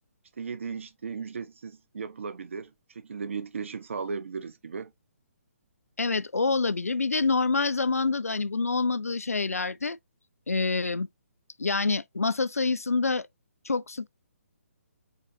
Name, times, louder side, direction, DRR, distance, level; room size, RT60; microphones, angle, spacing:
voice 1, 0.4-4.9, right 5 dB, 60° right, 0.6 m, -36 dB
voice 2, 6.0-10.0 10.5-11.1 11.6-13.3 13.7-14.1, left 4 dB, 80° left, 0.4 m, -26 dB
5.1 x 3.8 x 2.7 m
figure-of-eight pair, 135°, 8 cm